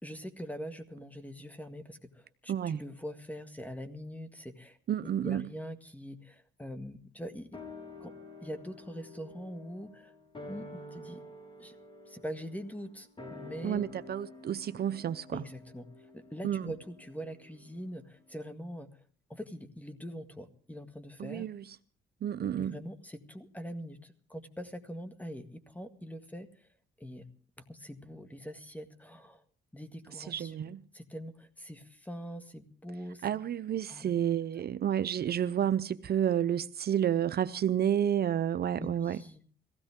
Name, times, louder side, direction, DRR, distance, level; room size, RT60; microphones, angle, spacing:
voice 1, 0.0-7.6 8.0-8.1 8.4-10.1 10.5-11.2 11.6-11.8 12.1-13.8 15.3-19.0 19.3-21.5 22.4-26.7 27.0-27.2 27.7-29.4 29.7-33.3 33.9-34.1 38.7-39.4, equal, 10° left, 1.9 m, -43 dB
voice 2, 2.5-2.8 4.9-5.5 13.6-15.4 16.4-16.7 21.2-21.6 22.2-22.8 30.3-30.8 33.2-39.2, right 9 dB, 55° right, 0.7 m, -30 dB
sound 1, 7.5-18.1 18.4-18.5, left 2 dB, 25° left, 4.8 m, -49 dB
22.5 x 16.5 x 3.7 m
cardioid pair, 90°, 20 cm